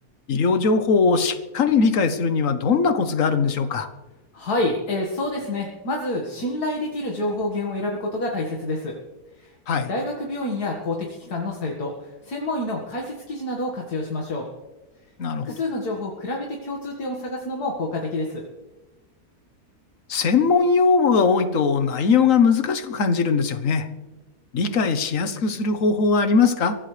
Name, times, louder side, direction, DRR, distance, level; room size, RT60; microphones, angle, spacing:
voice 1, 0.3-3.9 9.7-9.9 15.2-15.5 20.1-23.9 24.5-26.7, left 5 dB, 60° left, 10 dB, 1.4 m, -20 dB
voice 2, 4.3-9.0 9.4-9.5 9.9-14.5 15.4-18.4, left 2 dB, 85° left, -1 dB, 2.4 m, -28 dB
23.5 x 16.0 x 3.3 m, 1.1 s
omnidirectional pair, 1.6 m